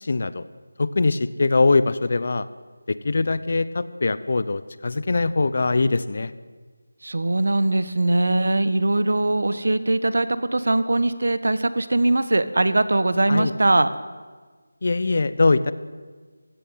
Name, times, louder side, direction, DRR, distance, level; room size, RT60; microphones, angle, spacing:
voice 1, 0.0-0.4 0.8-2.5 2.9-6.3 13.3-13.5 14.8-15.7, left 3 dB, 50° left, 15 dB, 1.0 m, -22 dB
voice 2, 7.0-13.9, right 2 dB, 70° right, 13 dB, 1.4 m, -21 dB
20.5 x 15.5 x 9.3 m, 1.4 s
figure-of-eight pair, 170°, 0 cm